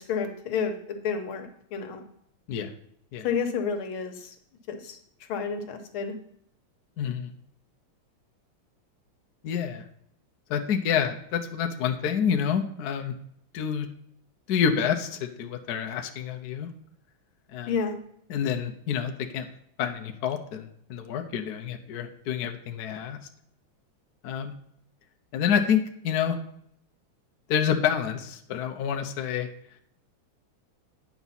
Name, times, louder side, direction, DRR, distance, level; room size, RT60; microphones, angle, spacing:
voice 1, 0.0-2.0 3.2-4.4 4.7-5.0 5.3-6.1 17.7-18.0, left 6 dB, 85° left, 6 dB, 1.8 m, -30 dB
voice 2, 7.0-7.3 9.4-9.8 10.5-13.1 13.5-13.9 14.5-16.7 17.5-17.7 18.3-19.5 19.8-23.2 24.2-24.5 25.3-26.4 27.5-29.5, left 8 dB, 65° left, 5 dB, 1.1 m, -28 dB
9.1 x 6.0 x 4.1 m, 0.70 s
omnidirectional pair, 2.3 m